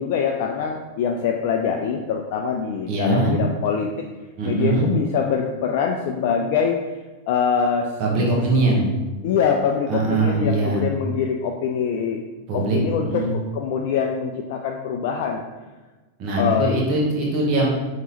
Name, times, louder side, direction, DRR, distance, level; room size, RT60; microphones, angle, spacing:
voice 1, 0.0-3.9 4.4-7.0 7.3-7.9 9.2-12.2 12.5-15.4 16.4-16.7, left 7 dB, 50° left, 2 dB, 0.3 m, -24 dB
voice 2, 2.9-3.3 4.4-4.8 8.0-8.9 9.9-10.8 12.5-13.3 16.2-17.7, right 2 dB, 40° right, -4 dB, 1.1 m, -21 dB
5.2 x 2.9 x 2.9 m, 1.2 s
figure-of-eight pair, 90°, 0 cm